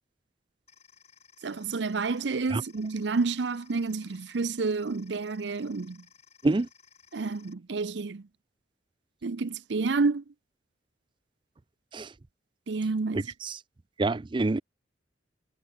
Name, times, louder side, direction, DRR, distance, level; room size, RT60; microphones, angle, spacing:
sound 1, 0.7-7.5, left 7 dB, 35° left, 5.9 m, -59 dB
voice 1, 1.4-6.0 7.1-8.2 9.2-10.2 12.7-13.3, right 4 dB, 70° right, 0.6 m, -29 dB
voice 2, 13.1-13.6 14.0-14.6, right 2 dB, 25° right, 0.4 m, -27 dB
head